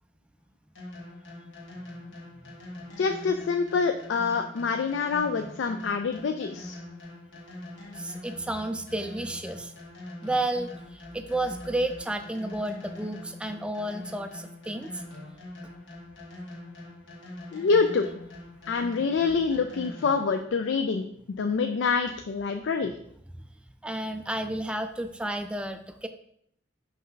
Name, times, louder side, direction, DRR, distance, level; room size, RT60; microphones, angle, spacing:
sound 1, 0.8-20.4, left 1 dB, 85° left, 1.9 m, -43 dB
voice 1, 3.0-6.8 17.5-18.1 18.7-21.1 21.4-22.9, left 5 dB, 70° left, 7 dB, 0.4 m, -26 dB
voice 2, 8.0-9.7 10.2-15.0 23.3-23.4 23.8-26.1, right 1 dB, 5° right, 7 dB, 0.3 m, -32 dB
5.4 x 5.3 x 3.9 m, 0.70 s
head